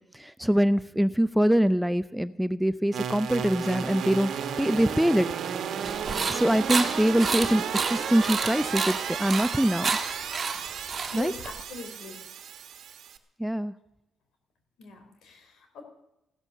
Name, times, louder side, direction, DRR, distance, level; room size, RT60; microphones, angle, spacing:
voice 1, 0.1-4.3 4.6-5.3 6.3-9.9 11.1-11.3 13.4-13.7, equal, 5° right, 14 dB, 0.5 m, -24 dB
sound 1, 2.9-13.2, right 8 dB, 65° right, 1.3 m, -33 dB
sound 2, 5.8-11.6, right 4 dB, 35° right, 1.8 m, -31 dB
voice 2, 11.1-12.2 14.8-15.8, left 4 dB, 75° left, 5 dB, 3.6 m, -42 dB
15.0 x 12.5 x 6.6 m, 0.90 s
cardioid pair, 90°, 0 cm